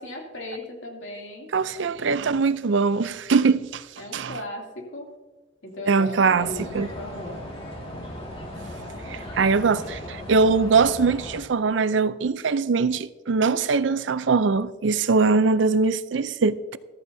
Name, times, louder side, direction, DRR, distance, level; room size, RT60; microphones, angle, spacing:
voice 1, 0.0-1.5 4.0-5.1 5.6-7.4, left 1 dB, 85° left, 2.8 m, -37 dB
voice 2, 1.5-3.9 4.1-4.4 5.9-6.5 6.7-6.9 9.1-16.8, right 4 dB, 75° right, 0.5 m, -22 dB
sound 1, 6.4-11.4, equal, 30° left, 2.1 m, -37 dB
14.5 x 13.5 x 2.7 m
head